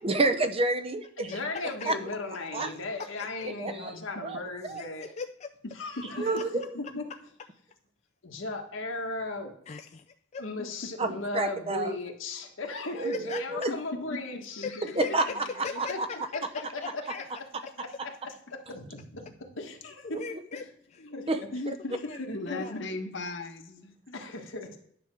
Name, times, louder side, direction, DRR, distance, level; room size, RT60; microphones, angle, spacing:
voice 1, 0.0-1.3 1.9-2.0 2.5-2.7 3.6-3.9 4.2-4.4 4.7-4.8 6.2-6.6 11.0-11.9 12.9-13.7 15.0-15.4 15.8-16.1 20.1-20.2 21.3-21.4, right 2 dB, 30° right, 9 dB, 0.6 m, -28 dB
voice 2, 1.2-5.1 5.8-6.4 6.9-7.0 8.2-9.6 10.4-14.8 15.9-16.0 16.7-17.0 18.3-18.4 18.7-20.2 20.5-20.6 21.1-21.5 22.3-22.6 24.1-24.8, left 3 dB, 85° left, 2 dB, 1.5 m, -37 dB
voice 3, 3.6-4.2 6.0-6.1 10.6-10.7 13.7-13.8 14.1-14.2 14.6-15.8 21.0-22.0 22.3-24.2, left 2 dB, 65° left, 6 dB, 1.0 m, -39 dB
voice 4, 4.8-5.5 9.7-10.0 10.3-10.4 13.0-13.4 15.0-16.2 16.8-17.3 20.2-20.6 21.9-22.2 22.5-22.8, left 5 dB, 35° left, 6 dB, 0.4 m, -39 dB
9.8 x 3.4 x 6.1 m, 0.68 s
head